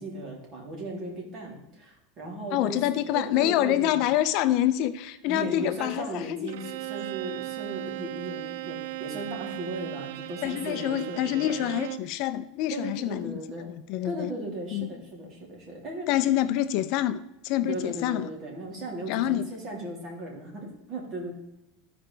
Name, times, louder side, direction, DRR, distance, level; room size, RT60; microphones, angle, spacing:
voice 1, 0.0-2.8 3.1-4.0 5.3-11.7 12.7-13.7 14.0-16.1 17.6-21.3, right 1 dB, 40° right, 3.0 m, -37 dB
voice 2, 2.5-6.5 10.4-13.4 13.7-14.3 14.7-14.9 16.1-18.3 19.1-19.5, left 13 dB, 55° left, 0.4 m, -26 dB
Bowed string instrument, 6.5-12.1, right 19 dB, 75° right, 0.3 m, -37 dB
14.0 x 5.0 x 3.4 m
supercardioid pair, 135°, 0 cm